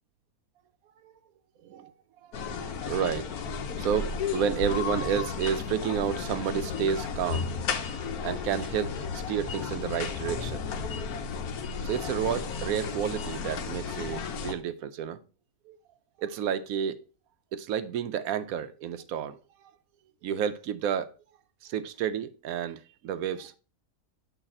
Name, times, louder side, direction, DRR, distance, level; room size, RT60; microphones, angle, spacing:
sound 1, 2.3-14.5, left 5 dB, 85° left, 1.3 m, -33 dB
voice 1, 2.5-3.3 3.8-7.5 8.2-10.6 11.8-15.2 15.7-15.8 16.2-17.0 17.5-19.7 20.2-21.1 21.6-23.6, right 8 dB, 75° right, 1.0 m, -31 dB
8.7 x 3.3 x 4.2 m
omnidirectional pair, 1.6 m